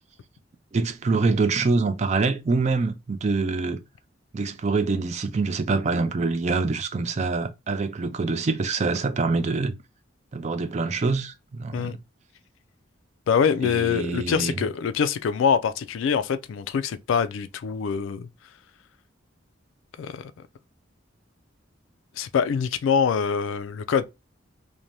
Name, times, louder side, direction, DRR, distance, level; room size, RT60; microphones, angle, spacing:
voice 1, 0.7-3.8 4.3-9.7 10.3-12.0 13.6-14.6, right 3 dB, 35° right, 0.3 m, -25 dB
voice 2, 13.3-18.3 20.0-20.3 22.2-24.0, left 6 dB, 75° left, 0.3 m, -24 dB
2.6 x 2.1 x 3.1 m
head